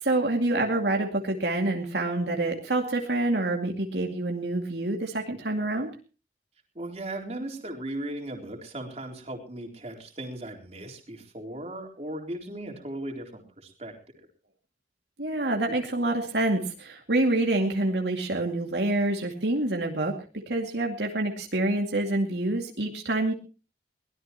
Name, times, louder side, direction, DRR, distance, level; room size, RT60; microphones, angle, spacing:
voice 1, 0.0-5.9 15.2-20.1 20.5-23.3, right 2 dB, 75° right, 1 dB, 2.4 m, -27 dB
voice 2, 6.7-14.3, right 1 dB, 35° right, 2 dB, 3.9 m, -37 dB
22.5 x 17.5 x 3.0 m, 0.36 s
head